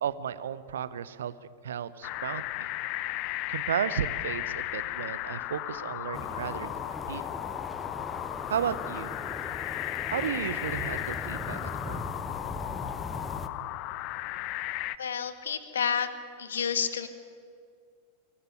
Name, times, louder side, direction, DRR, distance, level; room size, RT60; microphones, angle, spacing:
voice 1, 0.0-1.3 1.6-2.7 3.5-7.2 8.5-9.1 10.1-12.0, right 9 dB, 65° right, 16 dB, 0.8 m, -34 dB
sound 1, 2.0-15.0, left 17 dB, 40° left, 0.5 m, -35 dB
sound 2, 6.1-13.5, left 2 dB, 10° left, 1.1 m, -39 dB
voice 2, 15.0-16.1 16.4-17.1, left 7 dB, 65° left, 12 dB, 1.3 m, -29 dB
23.5 x 11.0 x 9.9 m, 2.3 s
figure-of-eight pair, 90°, 0 cm